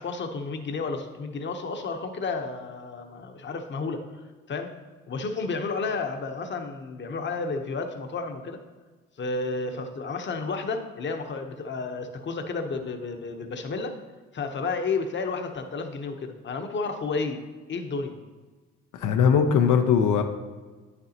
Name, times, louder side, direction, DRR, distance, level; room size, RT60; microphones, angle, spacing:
voice 1, 0.0-4.2 4.5-4.7 5.1-8.6 9.2-13.9 14.3-18.2, left 4 dB, 40° left, 5 dB, 0.8 m, -31 dB
voice 2, 18.9-20.2, left 7 dB, 80° left, 5 dB, 0.6 m, -20 dB
9.0 x 6.7 x 2.8 m, 1.3 s
cardioid pair, 90°, 30 cm